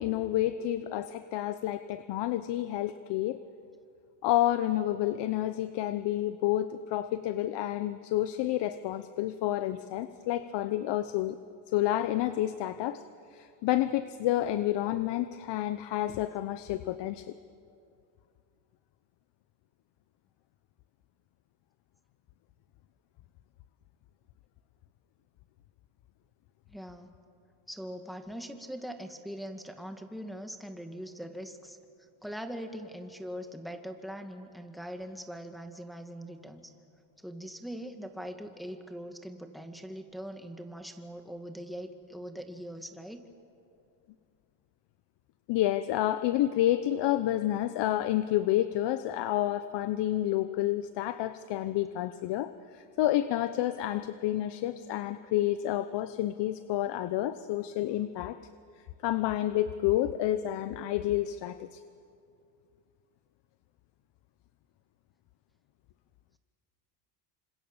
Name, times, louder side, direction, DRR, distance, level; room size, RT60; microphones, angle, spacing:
voice 1, 0.0-3.4 4.2-11.4 11.7-13.0 13.3-17.3 45.5-58.4 59.0-61.8, left 13 dB, 65° left, 12 dB, 1.0 m, -29 dB
voice 2, 26.7-27.2 27.7-31.8 32.2-36.7 37.2-43.2, equal, ahead, 5 dB, 2.1 m, -41 dB
28.0 x 26.0 x 7.3 m, 2.5 s
cardioid pair, 110°, 45 cm